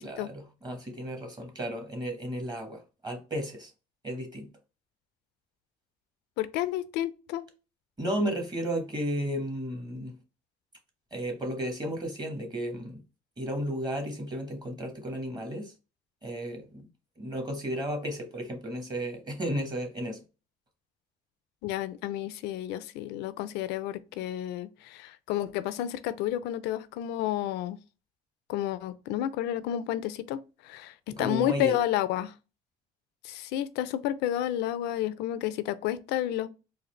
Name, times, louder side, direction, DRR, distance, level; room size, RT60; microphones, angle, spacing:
voice 1, 0.0-3.7 4.0-4.5 8.0-10.1 11.1-13.0 13.4-15.7 16.2-16.9 17.2-20.2 31.1-31.8, equal, 25° right, 1.1 m, -33 dB
voice 2, 6.4-7.5 21.6-27.8 28.5-32.3 33.2-36.5, left 12 dB, 90° left, 0.4 m, -31 dB
3.9 x 2.5 x 3.1 m
cardioid pair, 110°, 17 cm